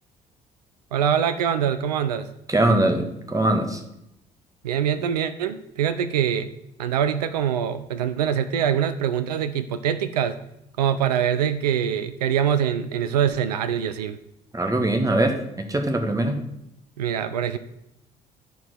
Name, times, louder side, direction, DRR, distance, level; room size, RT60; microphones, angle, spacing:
voice 1, 0.9-2.3 4.6-6.5 6.8-10.4 10.8-14.2 17.0-17.6, right 9 dB, 80° right, 11 dB, 0.5 m, -24 dB
voice 2, 2.5-3.8 14.5-16.4, right 1 dB, 15° right, 5 dB, 1.7 m, -22 dB
10.5 x 4.7 x 6.2 m, 0.81 s
figure-of-eight pair, 50°, 20 cm